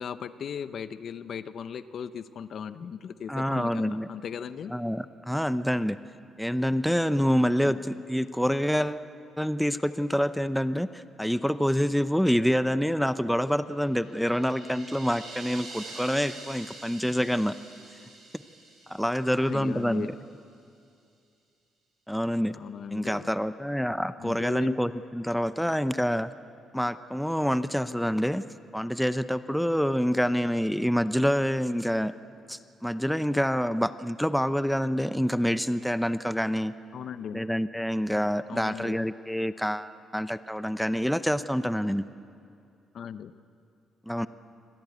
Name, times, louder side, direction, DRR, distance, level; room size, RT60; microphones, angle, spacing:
voice 1, 0.0-4.7 7.6-7.8 19.4-20.1 22.5-23.3 24.2-24.8 36.9-37.5 38.5-39.1 42.9-43.3, left 7 dB, 60° left, 13 dB, 0.8 m, -37 dB
voice 2, 3.3-4.1 4.7-6.0 6.4-9.0 9.4-17.5 18.9-20.1 22.1-22.6 22.9-26.3 26.7-28.4 28.7-32.1 32.5-36.7 37.3-42.1 44.1-44.3, equal, ahead, 13 dB, 0.6 m, -27 dB
sound 1, 13.8-20.0, right 3 dB, 70° right, 7.9 m, -46 dB
25.0 x 18.0 x 8.1 m, 2.5 s
cardioid pair, 90°, 0 cm